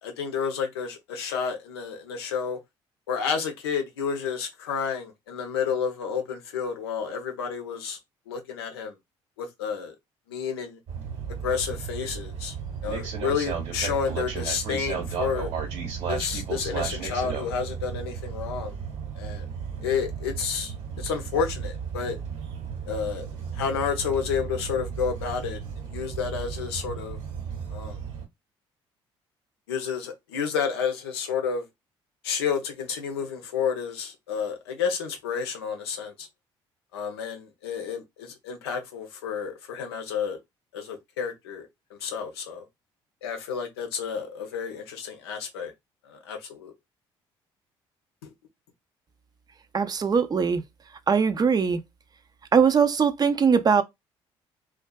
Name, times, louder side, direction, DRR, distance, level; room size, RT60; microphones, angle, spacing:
voice 1, 0.0-2.6 3.1-8.0 8.3-8.9 9.4-9.9 10.3-10.8 11.3-12.5 12.8-15.5 16.1-18.8 19.1-19.5 19.8-22.2 22.9-23.3 23.5-27.2 27.7-28.0 29.7-31.7 32.2-36.3 36.9-40.4 40.7-42.7 43.2-45.7 46.0-46.7 48.2-48.3, left 6 dB, 90° left, 0.5 m, -30 dB
sound 1, 10.9-28.3, right 6 dB, 60° right, 1.2 m, -34 dB
voice 2, 49.7-50.6 51.1-51.8 52.5-53.8, right 6 dB, 30° right, 0.5 m, -21 dB
2.5 x 2.3 x 2.2 m
hypercardioid pair, 55°, 13 cm